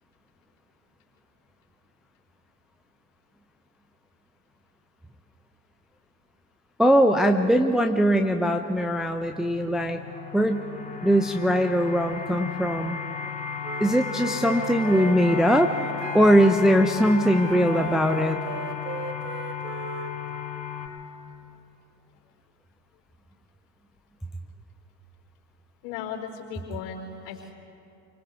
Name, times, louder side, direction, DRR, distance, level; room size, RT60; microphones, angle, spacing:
voice 1, 6.8-10.0 10.3-10.7 11.0-13.0 13.8-15.7 16.1-18.4, equal, ahead, 5 dB, 0.8 m, -21 dB
sound 1, 8.8-20.9, left 7 dB, 15° left, 5.1 m, -35 dB
Wind instrument woodwind instrument, 13.6-20.1, right 6 dB, 70° right, 1.5 m, -37 dB
voice 2, 25.8-27.5, left 7 dB, 55° left, 1 dB, 4.8 m, -36 dB
28.5 x 25.0 x 3.6 m, 2.7 s
figure-of-eight pair, 80°, 50 cm